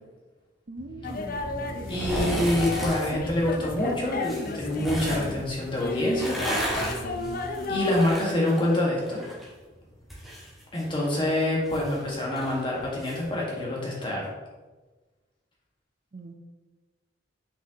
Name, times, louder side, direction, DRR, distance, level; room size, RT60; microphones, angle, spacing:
voice 1, 0.7-1.4 1.8-2.3 16.1-16.3, right 2 dB, 45° right, 4 dB, 0.5 m, -41 dB
sound 1, 0.8-7.8, equal, 85° left, 2.0 m, -42 dB
sound 2, 1.0-8.1, left 2 dB, 50° left, 0.5 m, -33 dB
sound 3, 1.8-3.0 4.2-5.3 6.0-9.5 9.8-13.2 13.5-13.6, equal, ahead, 1.8 m, -33 dB
voice 2, 1.9-6.4 7.7-9.2 10.7-14.3, left 1 dB, 25° left, -4 dB, 1.5 m, -26 dB
6.0 x 5.9 x 2.9 m, 1.2 s
head